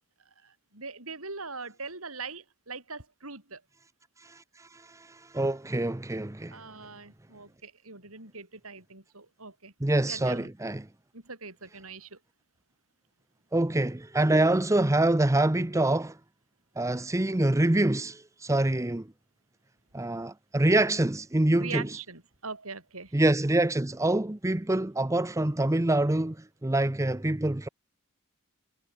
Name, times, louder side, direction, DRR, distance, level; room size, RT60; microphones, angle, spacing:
voice 1, 0.4-3.6 6.5-9.7 10.1-10.5 11.1-12.2 21.5-23.2, right 4 dB, 80° right, 7.5 m, -41 dB
voice 2, 4.2-6.6 9.8-10.9 13.5-16.2 16.8-19.1 19.9-22.0 23.1-27.7, right 1 dB, 15° right, 0.7 m, -26 dB
head